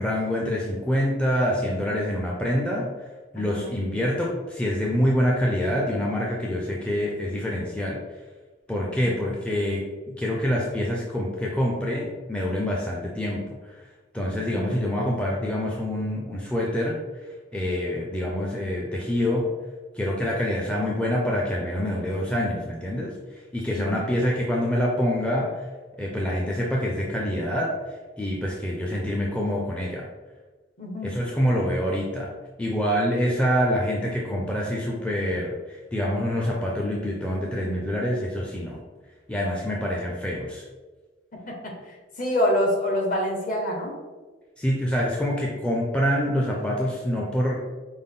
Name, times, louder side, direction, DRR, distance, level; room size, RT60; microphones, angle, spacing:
voice 1, 0.0-2.9 3.3-8.0 8.7-13.8 14.1-17.0 17.5-19.5 19.9-25.7 26.0-30.1 31.0-32.3 32.6-38.8 39.3-40.6 44.6-47.6, equal, 5° left, -4 dB, 0.4 m, -26 dB
voice 2, 3.3-3.8 8.8-9.2 14.5-14.7 23.7-24.0 30.8-31.2 41.5-43.9, left 1 dB, 45° left, 0 dB, 0.8 m, -27 dB
5.2 x 2.1 x 3.6 m, 1.3 s
head